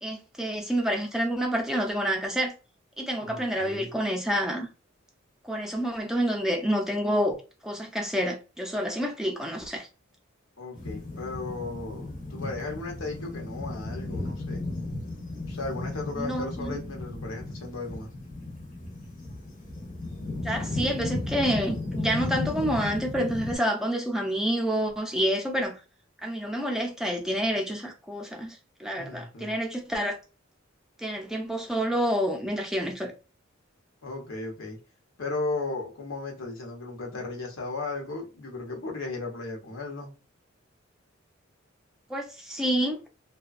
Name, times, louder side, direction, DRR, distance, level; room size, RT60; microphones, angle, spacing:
voice 1, 0.0-2.5 3.0-4.7 5.4-7.4 7.6-9.9 16.2-16.8 20.4-25.8 26.2-30.2 31.0-33.1 42.1-43.0, equal, 5° right, 0.5 m, -28 dB
voice 2, 3.2-3.9 10.6-14.6 15.5-18.1 29.0-29.5 34.0-34.8 35.2-40.1, left 3 dB, 90° left, 0.9 m, -35 dB
sound 1, 10.8-23.6, left 2 dB, 40° left, 0.7 m, -35 dB
2.7 x 2.2 x 2.4 m
head